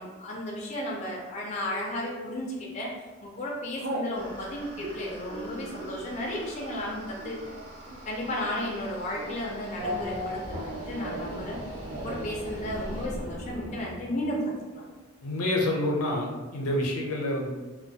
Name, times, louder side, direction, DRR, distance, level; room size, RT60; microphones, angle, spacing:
voice 1, 0.0-2.9 3.2-7.4 8.1-11.6 12.0-15.0, left 1 dB, 30° left, -3 dB, 0.3 m, -34 dB
Telephone, 1.6-2.1 2.7-3.0 3.2-4.1 4.7-10.2 10.4-11.5 11.8-12.3 12.6-12.7 12.9-13.5, right 2 dB, 50° right, 0.4 m, -40 dB
sound 1, 4.1-13.1, equal, 70° right, 0.8 m, -46 dB
Race car auto racing / Accelerating revving vroom, 9.8-14.5, equal, 85° right, 1.2 m, -37 dB
voice 2, 15.2-17.5, left 1 dB, 85° left, 0 dB, 0.5 m, -28 dB
2.3 x 2.2 x 2.6 m, 1.2 s
head